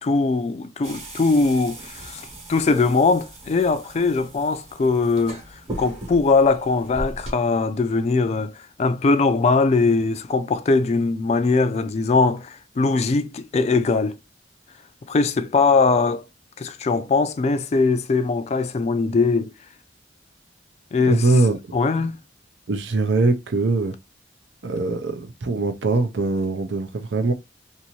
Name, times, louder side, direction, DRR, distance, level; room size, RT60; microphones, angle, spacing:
voice 1, 0.0-14.2 15.1-16.2 16.6-19.5 20.9-21.2 21.7-22.2, left 4 dB, 35° left, 0.3 m, -21 dB
sound 1, 0.8-7.3, right 1 dB, 35° right, 1.1 m, -38 dB
voice 2, 21.1-21.7 22.0-22.1 22.7-23.9 24.6-27.3, right 3 dB, 90° right, 0.6 m, -22 dB
2.7 x 2.6 x 2.9 m
head